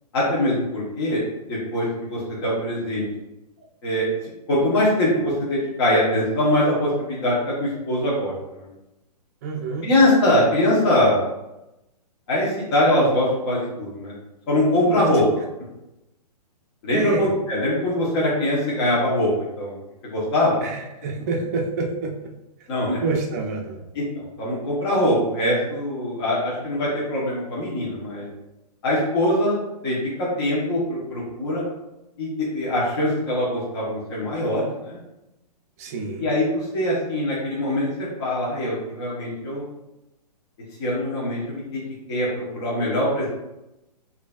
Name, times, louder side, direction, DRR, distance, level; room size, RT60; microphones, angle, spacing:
voice 1, 0.1-1.2 1.5-3.0 3.8-4.1 4.5-8.7 9.8-11.2 12.3-14.1 14.5-15.2 16.8-19.8 20.0-20.6 22.7-23.0 23.9-28.3 28.8-31.6 32.2-35.0 36.2-39.6 40.8-41.8 42.1-43.3, left 1 dB, 40° left, -6 dB, 1.1 m, -22 dB
voice 2, 9.4-9.9 14.8-15.1 16.9-17.3 20.6-22.3 22.6-22.7 23.0-23.9 35.8-36.3, right 3 dB, 25° right, 0 dB, 0.5 m, -27 dB
4.9 x 2.7 x 2.3 m, 0.94 s
hypercardioid pair, 160°, 21 cm